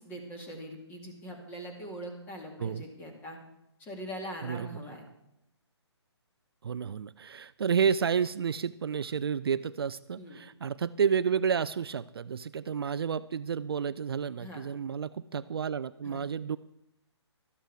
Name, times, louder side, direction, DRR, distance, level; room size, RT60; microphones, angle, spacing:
voice 1, 0.0-3.4 3.8-5.0 10.2-10.4 14.4-14.6 16.0-16.2, equal, 15° left, 2 dB, 2.4 m, -42 dB
voice 2, 6.6-16.6, right 7 dB, 55° right, 15 dB, 0.4 m, -30 dB
13.0 x 12.5 x 4.8 m, 0.84 s
figure-of-eight pair, 145°, 15 cm